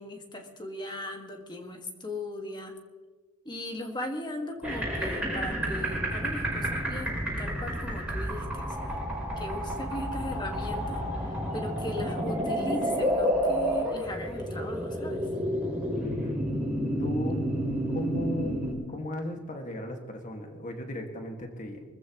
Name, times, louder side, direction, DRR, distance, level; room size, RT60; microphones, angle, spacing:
voice 1, 0.0-2.7 3.5-9.0 9.4-15.2, left 1 dB, 20° left, 3 dB, 1.9 m, -38 dB
sound 1, 4.6-18.7, equal, 5° right, 5.6 m, -30 dB
voice 2, 16.0-16.4 17.0-17.5 17.9-18.6 18.9-21.8, left 1 dB, 35° left, 3 dB, 1.9 m, -36 dB
24.0 x 14.5 x 3.1 m, 1.3 s
head